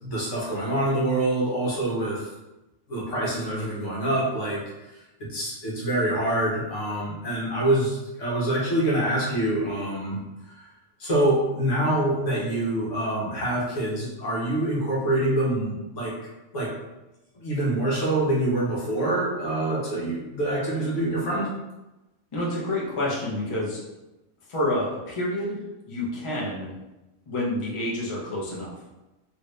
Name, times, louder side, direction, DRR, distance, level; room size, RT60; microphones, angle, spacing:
voice 1, 0.0-2.3 2.9-5.0 5.3-10.2 10.5-10.7 11.0-16.2 16.5-16.7 17.4-21.5, right 1 dB, 75° left, -5 dB, 1.3 m, -25 dB
voice 2, 22.3-23.8 24.5-26.7 27.3-28.7, left 1 dB, 30° left, -5 dB, 0.7 m, -28 dB
2.9 x 2.6 x 3.2 m, 1.0 s
omnidirectional pair, 1.3 m